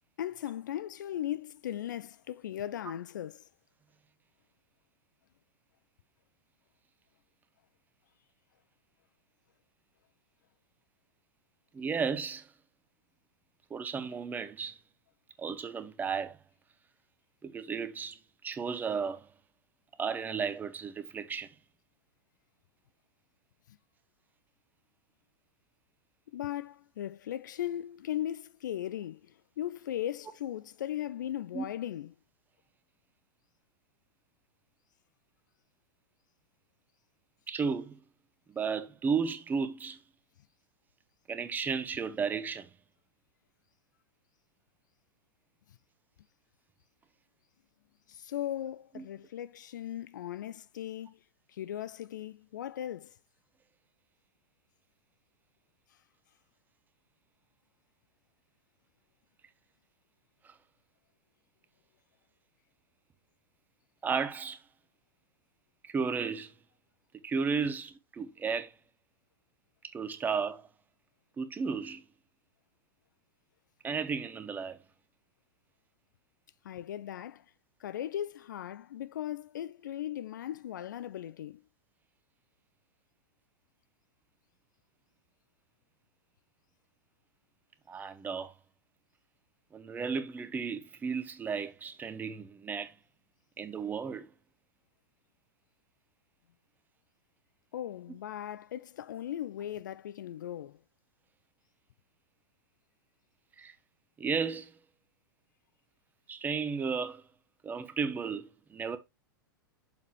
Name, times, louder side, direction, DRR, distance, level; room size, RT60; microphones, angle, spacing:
voice 1, 0.2-3.4 26.3-29.2 29.6-32.1 48.1-51.2 51.5-53.1 76.6-77.4 77.8-81.6 97.7-100.8, left 11 dB, 55° left, 0.4 m, -38 dB
voice 2, 11.7-12.5 13.7-14.8 15.4-16.4 17.4-19.3 20.0-21.5 31.5-31.6 37.5-38.0 38.5-40.0 41.3-42.7 48.9-49.1 60.4-60.5 64.0-64.6 65.8-66.5 67.2-68.7 69.9-70.7 71.4-72.0 73.8-74.8 87.9-88.5 89.7-92.9 93.6-94.3 103.6-103.7 104.2-104.7 106.3-107.2 107.6-109.0, right 5 dB, 15° right, 0.9 m, -34 dB
7.2 x 6.4 x 3.1 m
figure-of-eight pair, 100°, 12 cm